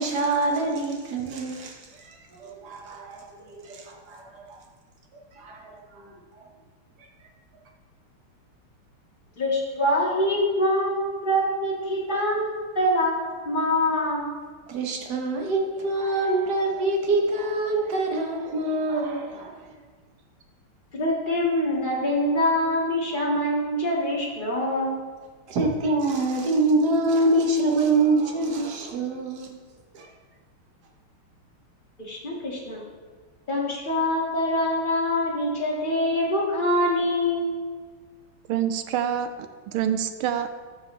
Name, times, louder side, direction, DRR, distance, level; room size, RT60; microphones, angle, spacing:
voice 1, 0.0-4.6 5.3-6.5 7.0-7.1 14.7-19.8 25.5-29.6 29.9-30.1, right 2 dB, 55° right, 1 dB, 1.6 m, -26 dB
voice 2, 9.4-14.4 20.9-25.0 32.0-32.8 33.5-37.5, left 1 dB, 25° left, -4 dB, 2.0 m, -24 dB
voice 3, 38.5-40.5, right 9 dB, 80° right, 9 dB, 1.5 m, -27 dB
14.0 x 6.2 x 3.3 m, 1.5 s
omnidirectional pair, 2.4 m